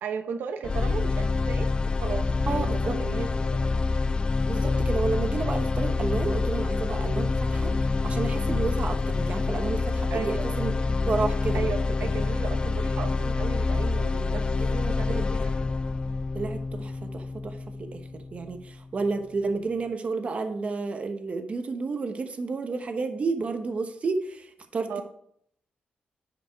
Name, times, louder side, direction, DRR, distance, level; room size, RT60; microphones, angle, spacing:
voice 1, 0.0-3.7 10.1-10.5 11.5-15.8 24.9-25.0, right 6 dB, 85° right, 6 dB, 0.9 m, -36 dB
sound 1, 0.6-18.7, left 3 dB, 30° left, 0.4 m, -27 dB
voice 2, 2.5-3.0 4.5-7.7 8.0-10.7 11.0-11.6 14.6-15.3 16.3-25.0, right 4 dB, 40° right, 6 dB, 1.1 m, -31 dB
10.0 x 5.2 x 4.7 m, 0.68 s
cardioid pair, 115°, 3 cm